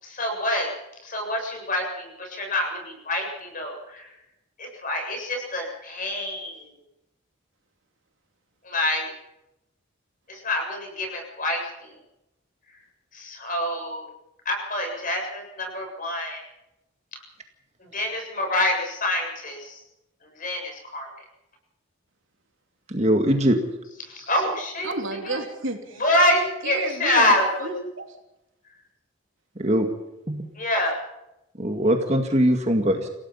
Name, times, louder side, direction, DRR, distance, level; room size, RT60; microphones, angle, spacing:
voice 1, 0.0-0.7 1.0-4.1 4.6-6.6 8.6-9.1 10.3-11.9 13.1-14.0 14.5-16.4 17.1-17.2 17.9-19.8 20.4-21.1 24.1-24.9 25.2-25.4 26.0-27.7 30.6-30.9, left 1 dB, 40° left, 2 dB, 7.5 m, -26 dB
voice 2, 22.9-23.6 29.6-29.9 30.3-30.4 31.6-33.1, equal, 30° right, 4 dB, 2.1 m, -21 dB
voice 3, 24.8-26.0 26.6-27.3 27.6-28.0, right 3 dB, 70° right, 3 dB, 3.5 m, -31 dB
29.0 x 17.0 x 5.7 m, 0.89 s
head